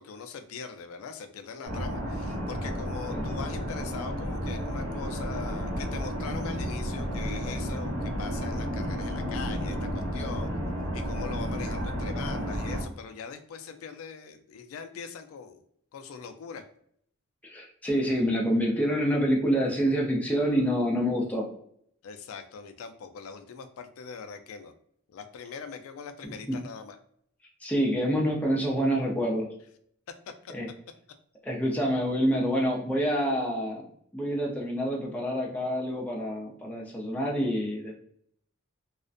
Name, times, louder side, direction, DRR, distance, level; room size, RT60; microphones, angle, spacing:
voice 1, 0.0-10.5 10.9-15.6 15.9-16.7 22.0-24.7 25.1-27.0 30.4-30.5, left 5 dB, 90° left, 7 dB, 0.3 m, -41 dB
sound 1, 1.6-12.8, equal, 85° right, 0.9 m, -32 dB
voice 2, 17.4-21.5 26.5-26.6 27.6-29.5 30.5-30.7 31.4-33.8 34.1-38.0, equal, 5° left, -3 dB, 0.4 m, -27 dB
2.4 x 2.1 x 2.5 m, 0.66 s
head